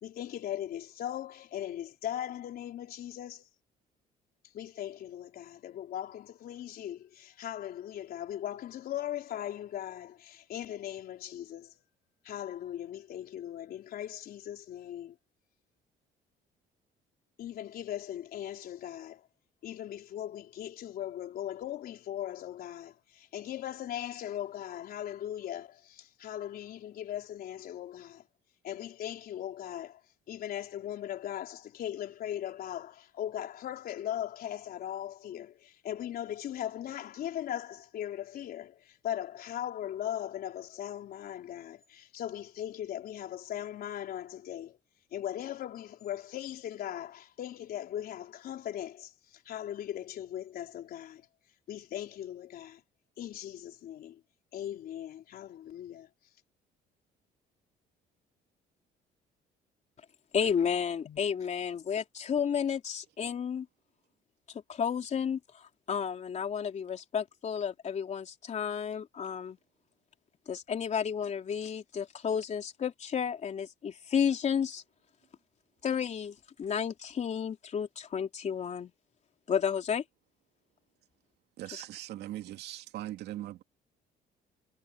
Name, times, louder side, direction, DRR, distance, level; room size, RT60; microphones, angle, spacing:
voice 1, 0.0-3.4 4.5-11.7 12.2-15.2 17.4-19.2 19.6-28.2 28.6-30.0 30.3-44.8 45.1-51.2 51.7-52.8 53.2-54.2 54.5-56.1, left 11 dB, 65° left, 4.0 m, -39 dB
voice 2, 60.3-63.7 64.7-69.6 70.5-74.8 75.8-78.9 79.5-80.0 81.7-81.8, left 7 dB, 45° left, 3.6 m, -32 dB
voice 3, 81.6-83.6, right 14 dB, 75° right, 2.6 m, -40 dB
cardioid pair, 110°, 17 cm